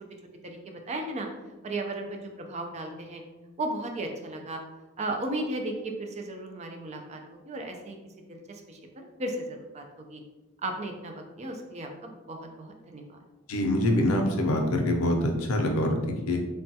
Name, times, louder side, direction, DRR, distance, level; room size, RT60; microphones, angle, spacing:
voice 1, 0.4-1.3 1.6-3.2 3.6-4.6 5.0-8.0 8.3-10.2 10.6-13.2, right 2 dB, 30° right, 3 dB, 0.4 m, -35 dB
voice 2, 13.5-16.4, left 1 dB, 85° left, 2 dB, 0.5 m, -25 dB
3.2 x 2.2 x 2.7 m, 1.1 s
head